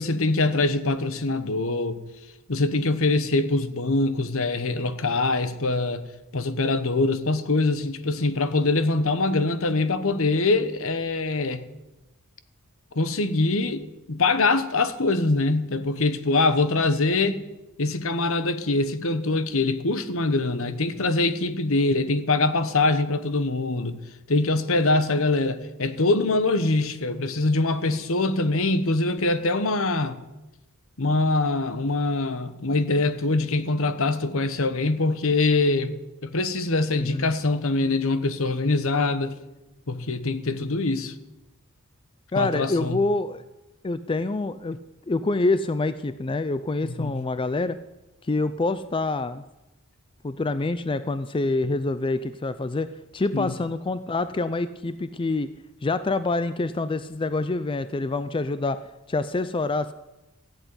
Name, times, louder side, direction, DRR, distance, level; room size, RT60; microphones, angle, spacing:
voice 1, 0.0-2.0 2.5-6.0 6.3-11.7 12.9-17.4 17.8-24.0 24.3-30.2 31.0-39.4 39.9-41.1 42.3-43.0 46.8-47.2 53.3-53.5, left 2 dB, 65° left, 1.1 m, -23 dB
voice 2, 36.9-37.3 42.3-43.4 43.8-44.8 45.1-47.8 48.2-49.4 50.2-52.9 53.1-55.5 55.8-58.8 59.1-59.9, left 3 dB, 25° left, 0.4 m, -26 dB
15.5 x 8.1 x 9.8 m
head